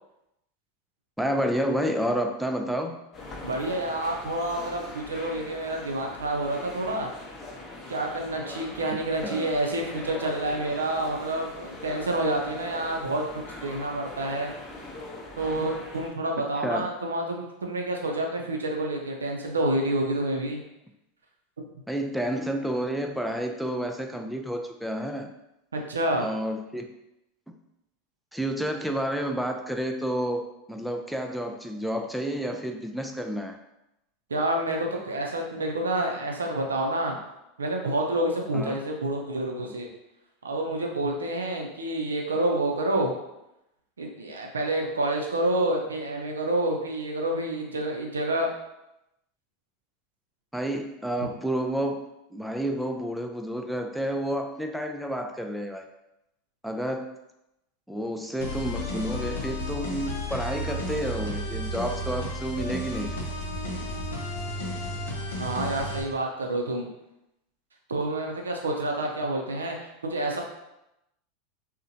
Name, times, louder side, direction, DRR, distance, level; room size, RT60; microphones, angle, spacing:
voice 1, 1.2-3.0 9.2-9.5 16.6-16.9 21.9-25.3 26.2-26.9 27.5-27.6 28.3-33.6 38.5-38.8 50.5-55.9 56.6-57.1 57.9-63.3, equal, ahead, 4 dB, 0.3 m, -30 dB
sound 1, 3.1-16.1, left 2 dB, 35° left, 0.7 m, -41 dB
voice 2, 3.4-7.1 7.9-13.2 13.6-14.5 15.4-20.6 21.6-21.7 25.7-26.3 34.3-37.1 37.6-39.9 40.4-43.1 44.0-48.5 51.2-51.3 65.4-66.9 67.9-70.4, right 1 dB, 85° right, 1 dB, 0.4 m, -28 dB
sound 2, 58.4-66.0, left 1 dB, 75° left, 0.5 m, -32 dB
2.6 x 2.1 x 2.6 m, 0.88 s
hypercardioid pair, 90°, 0 cm